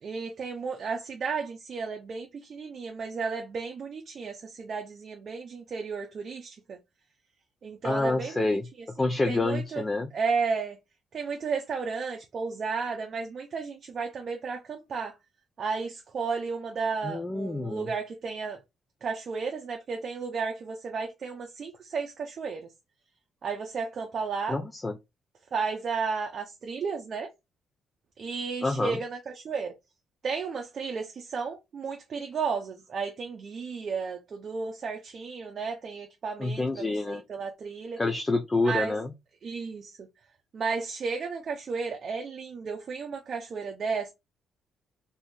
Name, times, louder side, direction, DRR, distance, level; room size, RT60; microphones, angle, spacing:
voice 1, 0.0-6.8 7.6-9.8 10.1-10.8 11.1-15.1 15.6-18.6 19.0-22.7 23.4-24.6 25.5-27.3 28.2-29.7 30.2-38.0 38.6-39.0 39.4-40.1 40.5-44.1, right 5 dB, 50° right, 0.6 m, -33 dB
voice 2, 7.8-8.6 9.0-10.1 17.0-17.9 24.5-24.9 28.6-29.0 36.4-37.2 38.0-39.1, left 2 dB, 20° left, 0.4 m, -28 dB
2.7 x 2.4 x 3.5 m
cardioid pair, 90°, 0 cm